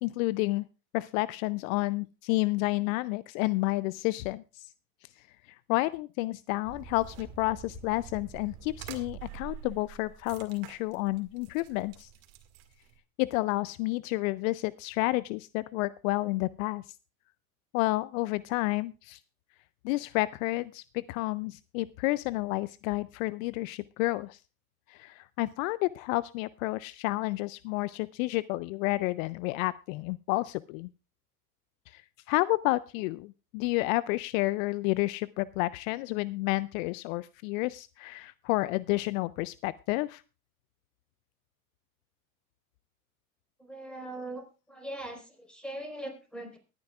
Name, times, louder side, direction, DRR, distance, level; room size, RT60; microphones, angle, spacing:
voice 1, 0.0-0.6 0.9-4.7 5.7-12.1 13.2-16.8 17.7-19.2 19.8-24.4 24.9-30.9 31.9-32.0 32.3-40.2, left 20 dB, 65° left, 20 dB, 0.5 m, -30 dB
sound 1, 6.6-13.0, right 9 dB, 65° right, 2.0 m, -47 dB
voice 2, 43.6-46.6, right 1 dB, ahead, 4 dB, 4.3 m, -41 dB
22.5 x 9.7 x 2.4 m, 0.31 s
hypercardioid pair, 75°, 44 cm